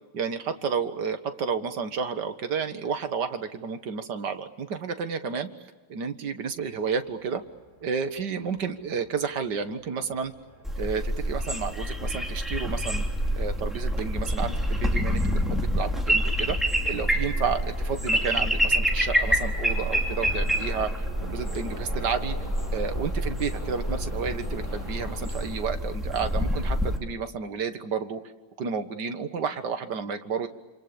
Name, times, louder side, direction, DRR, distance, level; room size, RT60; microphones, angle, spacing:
voice 1, 0.1-5.5 5.9-7.4 7.8-10.3 10.8-13.0 13.3-15.2 15.5-16.6 16.9-22.4 22.7-28.2 28.6-30.5, right 6 dB, 60° right, 8 dB, 2.1 m, -31 dB
sound 1, 6.5-25.6, left 1 dB, 20° left, 5.7 m, -45 dB
sound 2, 10.7-27.0, equal, ahead, 3.2 m, -27 dB
27.5 x 27.5 x 7.0 m, 1.2 s
omnidirectional pair, 2.2 m